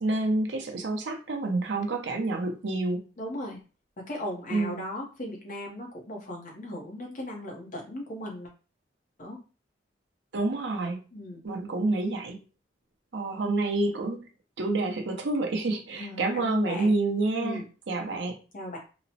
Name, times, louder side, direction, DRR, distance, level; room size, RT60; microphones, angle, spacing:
voice 1, 0.0-3.0 4.5-4.8 10.3-11.0 11.4-12.4 13.1-14.2 14.6-18.4, right 2 dB, 70° right, 3 dB, 0.6 m, -28 dB
voice 2, 3.2-3.6 4.1-8.5 9.2-9.4 11.1-11.4 15.9-17.0 17.4-17.7 18.5-18.8, left 1 dB, 45° left, 0 dB, 0.8 m, -37 dB
2.9 x 2.0 x 2.7 m, 0.34 s
head